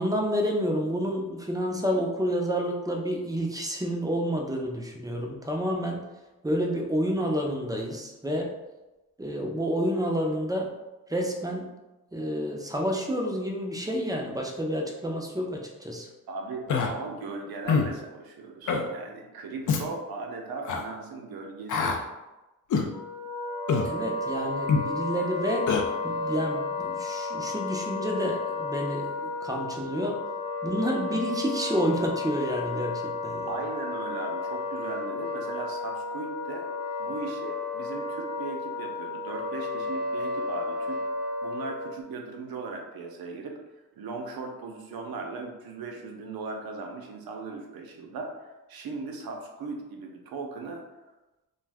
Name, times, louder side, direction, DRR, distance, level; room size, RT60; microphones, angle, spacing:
voice 1, 0.0-6.0 6.4-8.5 9.2-10.7 11.1-11.7 12.1-16.1 23.8-25.7 26.0-30.2 30.6-33.5, equal, 10° right, 1 dB, 0.4 m, -29 dB
voice 2, 16.3-22.0 33.5-36.7 37.0-41.0 41.4-43.6 43.9-50.8, right 3 dB, 80° right, 2 dB, 0.6 m, -38 dB
Human voice, 16.7-16.9 17.7-17.9 18.7-18.9 19.7-19.8 20.6-20.8 21.7-22.0 22.7-22.9 23.7-23.9 24.7-24.9 25.7-25.8, left 5 dB, 55° left, 0.4 m, -24 dB
Wind instrument woodwind instrument, 22.9-42.0, left 3 dB, 15° left, 0.8 m, -33 dB
2.5 x 2.2 x 3.4 m, 1.1 s
cardioid pair, 90°, 36 cm